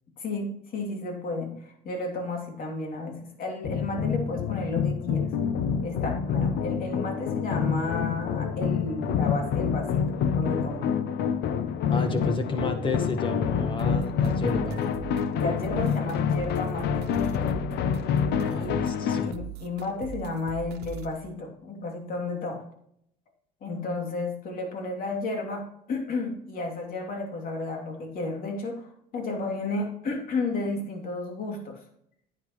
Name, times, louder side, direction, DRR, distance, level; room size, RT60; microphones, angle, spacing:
voice 1, 0.2-5.3 5.8-10.9 11.9-12.3 15.3-16.9 18.6-18.9 19.2-22.6 23.6-31.8, left 3 dB, 55° left, 2 dB, 3.0 m, -32 dB
sound 1, 3.6-19.3, left 7 dB, 80° left, 0.8 m, -27 dB
voice 2, 11.9-14.8 18.5-19.3, left 2 dB, 30° left, 7 dB, 1.7 m, -31 dB
sound 2, 13.8-21.2, right 9 dB, 75° right, 1.0 m, -41 dB
10.5 x 8.9 x 3.2 m, 0.70 s
cardioid pair, 110°, 17 cm